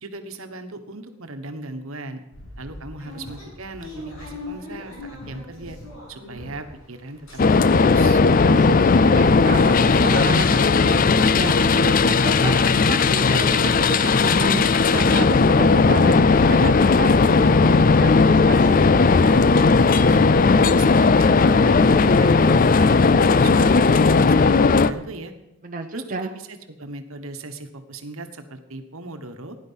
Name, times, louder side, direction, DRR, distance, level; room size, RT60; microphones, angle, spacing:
voice 1, 0.0-2.2 2.6-5.8 6.1-7.4 7.7-8.2 20.1-20.2 20.5-25.3 25.9-29.6, right 2 dB, 70° right, 7 dB, 1.3 m, -37 dB
sound 1, 2.3-6.8 7.1-7.9 8.3-8.4 8.6-8.8, left 2 dB, 65° left, 6.6 m, -39 dB
sound 2, 7.4-24.9, left 4 dB, 40° left, 0.4 m, -16 dB
voice 2, 8.4-18.8 25.6-26.3, right 3 dB, 35° right, 3 dB, 0.7 m, -31 dB
16.5 x 10.5 x 5.6 m, 0.97 s
head